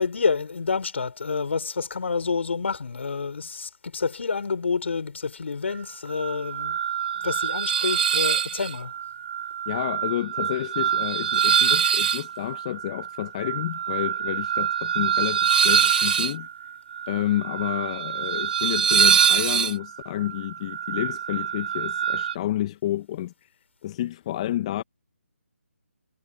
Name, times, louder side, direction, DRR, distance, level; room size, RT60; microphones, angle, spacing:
voice 1, 0.0-6.8 7.2-8.9, left 5 dB, 60° left, 6.0 m, -28 dB
sound 1, 6.2-22.3, right 8 dB, 40° right, 2.0 m, -24 dB
voice 2, 9.7-16.5 17.1-23.5 23.8-24.8, left 13 dB, 25° left, 1.1 m, -30 dB
figure-of-eight pair, 155°, 7 cm